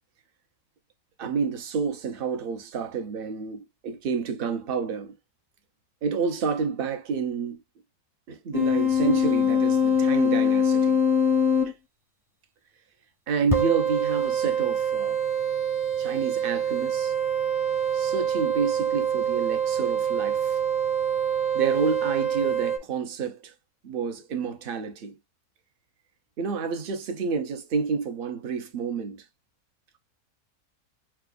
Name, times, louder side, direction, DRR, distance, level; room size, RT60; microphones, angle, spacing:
voice 1, 1.2-5.1 6.0-7.6 8.3-11.0 11.6-11.7 13.3-15.2 16.0-17.1 17.9-20.6 21.5-23.5 23.8-25.1 26.4-29.2, right 5 dB, 45° right, 0.8 m, -29 dB
sound 1, 8.5-11.7 13.5-22.8, equal, ahead, 0.7 m, -24 dB
5.8 x 2.3 x 2.4 m
omnidirectional pair, 1.6 m